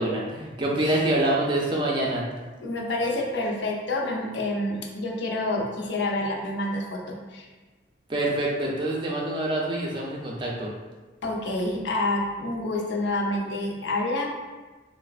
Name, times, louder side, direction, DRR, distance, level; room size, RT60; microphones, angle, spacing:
voice 1, 0.0-2.2 8.1-10.7, right 1 dB, 25° right, -3 dB, 0.4 m, -26 dB
voice 2, 2.6-7.5 11.2-14.3, left 2 dB, 80° left, 0 dB, 0.5 m, -28 dB
3.1 x 2.0 x 2.4 m, 1.3 s
head